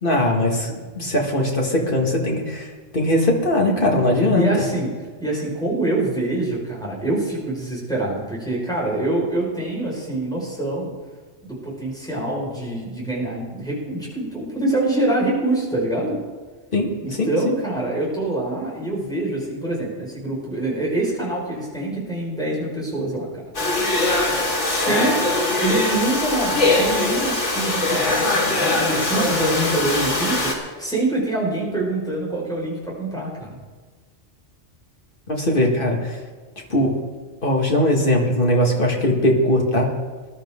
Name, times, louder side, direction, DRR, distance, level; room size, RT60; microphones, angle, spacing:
voice 1, 0.0-2.7 2.9-4.5 16.7-16.9 17.2-17.5 35.3-36.2 36.7-36.9 37.4-39.9, left 1 dB, 50° left, 0 dB, 2.1 m, -20 dB
voice 2, 4.3-4.9 5.2-10.9 11.4-16.2 17.0-23.3 24.7-25.2 25.6-33.6, right 2 dB, 5° left, -5 dB, 5.1 m, -25 dB
Domestic sounds home sounds, 23.5-30.5, left 2 dB, 85° left, 2.5 m, -21 dB
20.5 x 12.0 x 3.7 m, 1.4 s
omnidirectional pair, 1.2 m